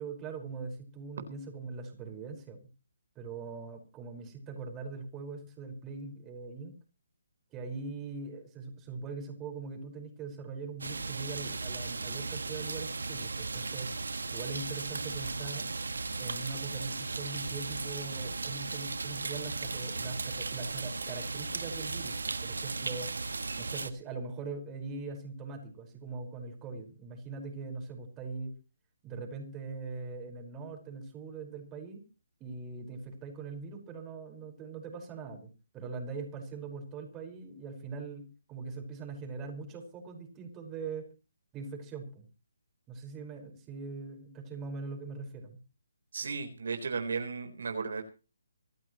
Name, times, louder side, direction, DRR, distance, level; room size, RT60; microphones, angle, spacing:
voice 1, 0.0-2.6 3.2-6.7 7.5-13.9 14.3-15.7 16.2-23.1 23.6-28.5 29.0-32.0 32.4-41.1 41.5-42.3 42.9-45.6, right 4 dB, 15° right, 3 dB, 5.2 m, -41 dB
sound 1, 10.8-23.9, right 3 dB, 90° right, 1.6 m, -36 dB
voice 2, 46.1-48.0, right 5 dB, 70° right, 6 dB, 4.0 m, -35 dB
26.0 x 12.0 x 3.1 m, 0.34 s
hypercardioid pair, 160°, 0 cm